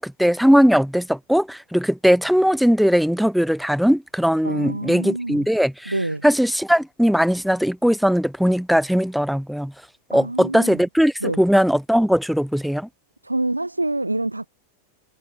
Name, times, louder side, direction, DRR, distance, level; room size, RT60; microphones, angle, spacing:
voice 1, 0.0-5.9 6.2-9.7 10.1-12.9, equal, ahead, 0.9 m, -19 dB
voice 2, 4.4-5.5 5.8-6.2 10.1-10.8 11.2-11.4 13.2-14.5, right 2 dB, 85° right, 1.6 m, -26 dB
figure-of-eight pair, 90°, 0 cm